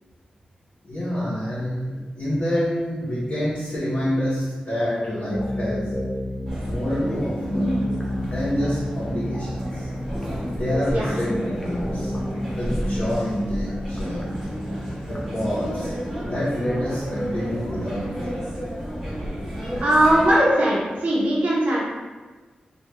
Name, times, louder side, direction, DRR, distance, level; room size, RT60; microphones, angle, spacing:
voice 1, 0.8-5.9 6.7-7.8 8.1-9.9 10.5-14.4 15.1-18.5, equal, 50° left, -11 dB, 0.8 m, -27 dB
sound 1, 5.3-15.2, equal, 20° left, 0.4 m, -30 dB
sound 2, 6.5-20.3, equal, 5° right, 1.1 m, -32 dB
voice 2, 19.8-21.9, right 1 dB, 65° right, -6 dB, 0.7 m, -19 dB
3.1 x 2.2 x 3.2 m, 1.3 s
wide cardioid pair, 145°, 3 cm